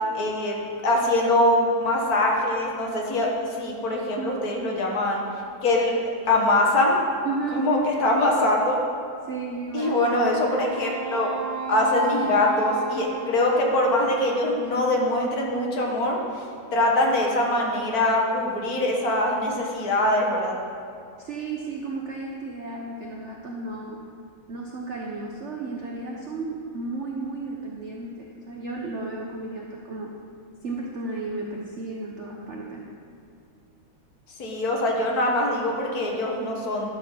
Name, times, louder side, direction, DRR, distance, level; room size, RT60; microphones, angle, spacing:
voice 1, 0.1-0.6 0.8-5.2 5.6-5.9 6.3-7.0 7.5-8.8 9.7-11.3 11.7-16.4 16.7-20.5 34.4-36.9, left 1 dB, 50° left, -1 dB, 1.4 m, -23 dB
voice 2, 7.2-8.5 9.3-10.1 21.2-24.0 24.5-30.1 30.6-32.9, right 3 dB, 65° right, -1 dB, 0.7 m, -33 dB
Wind instrument woodwind instrument, 9.8-14.4, right 5 dB, 90° right, 1.6 m, -35 dB
12.0 x 4.2 x 6.3 m, 2.4 s
omnidirectional pair, 2.2 m